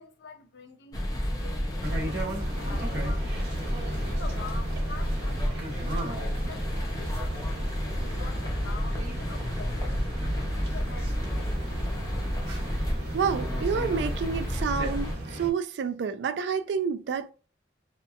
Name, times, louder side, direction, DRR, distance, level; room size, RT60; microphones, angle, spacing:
voice 1, 0.0-3.4 3.9-10.0 10.6-11.7, left 4 dB, 75° left, 0.5 m, -46 dB
sound 1, 0.9-15.2, equal, 20° left, 0.4 m, -31 dB
sound 2, 1.8-15.5, right 1 dB, 65° right, 0.8 m, -36 dB
voice 2, 13.1-17.3, right 6 dB, 85° right, 0.3 m, -29 dB
2.8 x 2.1 x 2.3 m
head